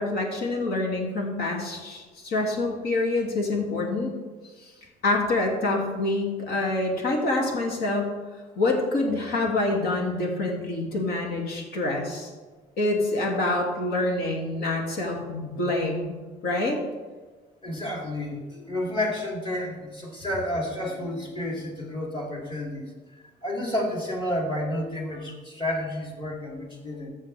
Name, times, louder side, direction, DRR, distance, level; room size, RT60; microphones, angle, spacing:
voice 1, 0.0-4.1 5.0-8.1 8.6-12.3 12.8-16.1 16.4-16.8, left 2 dB, 70° left, 0 dB, 2.6 m, -26 dB
voice 2, 17.6-22.9 23.4-27.1, left 1 dB, 30° left, -2 dB, 3.3 m, -30 dB
14.0 x 7.4 x 3.5 m, 1.3 s
cardioid pair, 110°, 17 cm